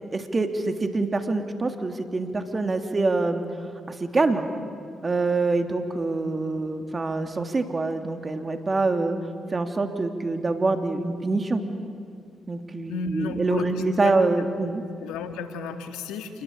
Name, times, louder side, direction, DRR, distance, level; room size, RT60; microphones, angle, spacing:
voice 1, 0.1-3.4 3.9-4.5 5.0-9.2 9.5-11.6 12.5-14.8, right 3 dB, 35° right, 6 dB, 3.0 m, -25 dB
voice 2, 12.9-14.1 14.4-14.5 15.0-16.4, left 5 dB, 90° left, 7 dB, 1.9 m, -33 dB
28.0 x 21.5 x 8.8 m, 2.3 s
supercardioid pair, 50°, 0 cm